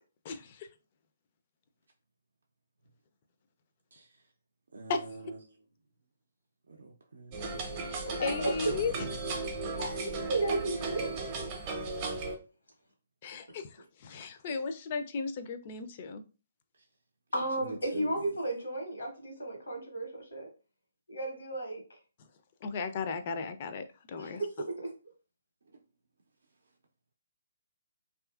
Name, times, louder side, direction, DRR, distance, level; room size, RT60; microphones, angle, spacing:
voice 1, 0.2-0.7 4.9-5.0 7.8-9.4 13.2-16.2 22.6-24.4, left 5 dB, 40° left, 8 dB, 0.4 m, -36 dB
voice 2, 4.7-5.5 6.7-7.5 10.2-11.0 17.3-18.3, right 3 dB, 80° right, 0 dB, 0.4 m, -45 dB
sound 1, 7.3-12.4, right 3 dB, 30° right, 0.6 m, -36 dB
voice 3, 8.0-8.5 9.8-11.2 17.3-20.5 21.1-21.8 24.2-24.9, right 1 dB, 85° left, 1 dB, 1.1 m, -34 dB
2.6 x 2.4 x 2.3 m, 0.34 s
hypercardioid pair, 145°, 0 cm